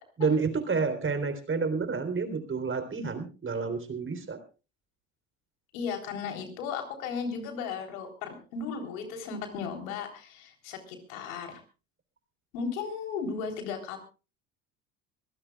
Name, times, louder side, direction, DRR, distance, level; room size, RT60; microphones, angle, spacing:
voice 1, 0.2-4.4, right 4 dB, 30° right, 9 dB, 3.6 m, -29 dB
voice 2, 5.7-11.6 12.5-14.0, left 5 dB, 75° left, 5 dB, 3.8 m, -35 dB
24.5 x 16.0 x 2.4 m, 0.33 s
hypercardioid pair, 75°, 42 cm